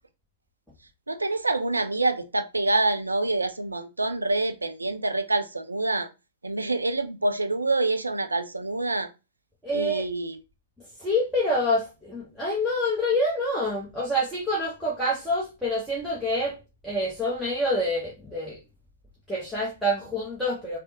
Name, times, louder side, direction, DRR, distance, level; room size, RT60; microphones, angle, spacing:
voice 1, 1.1-6.1 6.4-9.1 9.7-10.4, right 2 dB, 80° right, 0.4 m, -26 dB
voice 2, 9.6-10.1 10.8-16.6 16.8-18.6 19.3-20.8, left 1 dB, ahead, 0.9 m, -27 dB
3.3 x 2.0 x 2.8 m
figure-of-eight pair, 105°, 0 cm